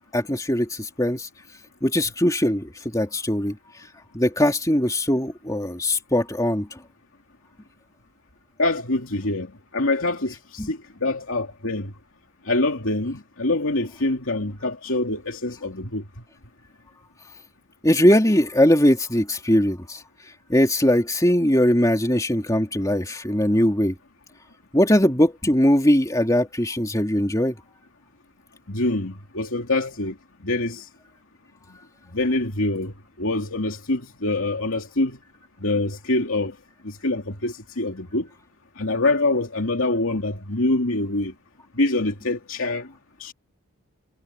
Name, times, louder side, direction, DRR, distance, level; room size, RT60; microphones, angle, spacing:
voice 1, 0.1-1.3 1.8-3.6 4.1-6.8 10.6-10.7 17.8-20.0 20.5-23.9 24.7-27.5, left 1 dB, 15° left, 3.0 m, -20 dB
voice 2, 8.6-11.9 12.4-16.0 28.7-30.1 30.4-30.9 32.1-35.2 35.6-36.5 36.8-38.3 38.8-41.3 41.8-42.9 43.2-43.3, left 2 dB, 65° left, 2.9 m, -25 dB
head